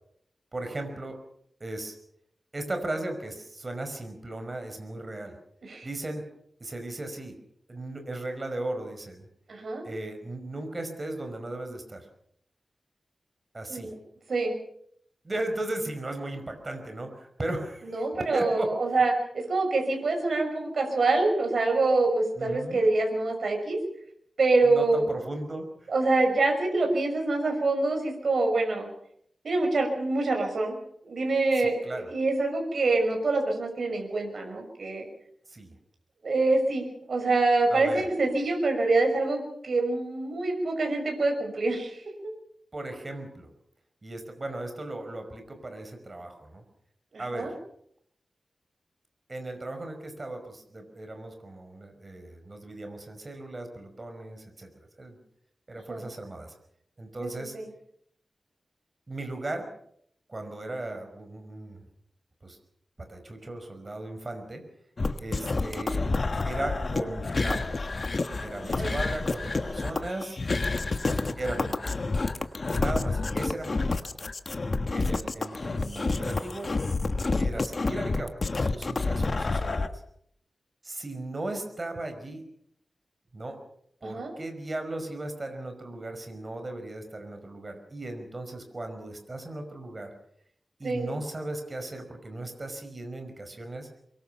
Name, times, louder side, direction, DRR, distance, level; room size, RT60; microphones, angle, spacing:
voice 1, 0.5-1.2 1.6-2.0 2.5-5.4 5.8-6.2 6.6-7.4 7.7-9.3 9.8-12.1 13.5-13.9 15.2-18.7 22.4-22.8 24.6-25.9 31.6-32.1 35.5-35.7 37.7-38.0 42.7-43.5 44.0-46.6 47.2-47.6 49.3-54.7 55.0-55.2 55.7-56.5 57.0-57.5 59.1-59.7 60.3-61.8 62.4-62.6 63.0-64.6 65.2-66.0 66.4-67.7 68.4-70.4 71.4-72.0 72.7-74.0 74.9-76.7 77.4-79.9 80.8-82.4 83.3-83.6 84.0-90.1 90.8-93.9, right 2 dB, 35° right, 6 dB, 5.3 m, -36 dB
voice 2, 9.5-9.8 13.7-14.0 14.3-14.5 17.8-23.8 24.4-25.1 25.9-28.9 29.4-30.8 31.0-35.0 36.2-42.0 47.1-47.5 55.9-56.0 57.2-57.7 68.6-68.9 84.0-84.3 90.8-91.1, right 3 dB, 70° right, 2 dB, 5.9 m, -26 dB
sound 1, 65.0-79.9, left 3 dB, 45° left, 1.4 m, -29 dB
25.0 x 22.5 x 5.8 m, 0.68 s
wide cardioid pair, 105°, 0 cm